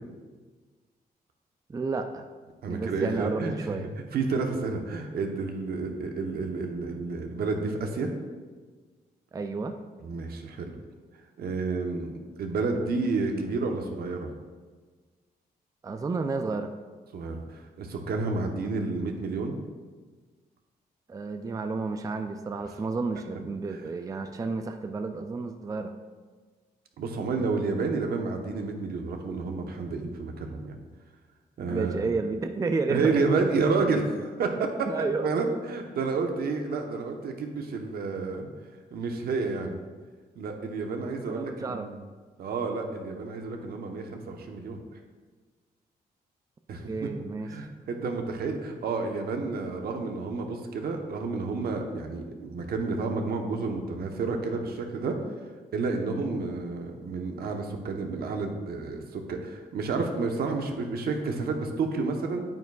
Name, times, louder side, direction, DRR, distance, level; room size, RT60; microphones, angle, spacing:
voice 1, 1.7-2.3 2.7-3.9 9.3-9.8 15.8-16.7 21.1-25.9 31.7-33.2 34.9-35.3 41.3-41.9 46.9-47.7, right 3 dB, 20° right, 7 dB, 0.4 m, -31 dB
voice 2, 2.6-3.8 4.1-8.1 10.0-10.8 11.4-12.1 12.4-14.3 17.1-19.6 27.0-30.8 31.6-32.1 32.9-34.9 35.2-38.5 38.9-39.8 40.4-41.9 42.4-44.8 46.7-47.1 47.4-55.2 55.7-62.4, right 4 dB, 70° right, 3 dB, 1.0 m, -30 dB
9.0 x 8.2 x 2.3 m, 1.4 s
cardioid pair, 105°, 16 cm